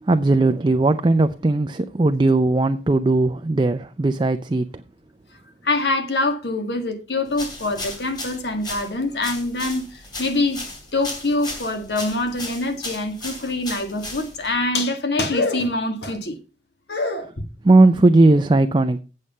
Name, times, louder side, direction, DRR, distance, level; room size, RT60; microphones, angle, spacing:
voice 1, 0.0-4.7 17.6-19.0, right 2 dB, 25° right, 0.4 m, -17 dB
voice 2, 5.6-10.6 10.9-16.4 16.9-17.3, left 2 dB, 65° left, 1.9 m, -24 dB
sound 1, 7.3-14.6, left 2 dB, 25° left, 3.2 m, -35 dB
8.3 x 7.5 x 5.5 m
head